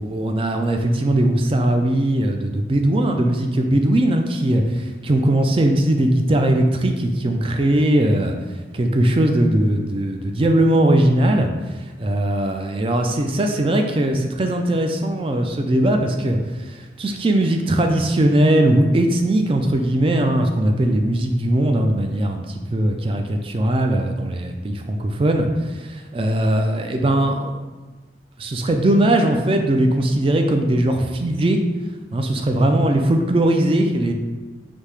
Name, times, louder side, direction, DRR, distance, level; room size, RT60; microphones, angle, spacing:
voice 1, 0.0-8.3 8.7-11.5 11.8-16.4 16.7-27.5 28.4-31.6 32.1-34.1, right 1 dB, 30° right, 4 dB, 0.3 m, -19 dB
5.1 x 2.7 x 3.3 m, 1.3 s
head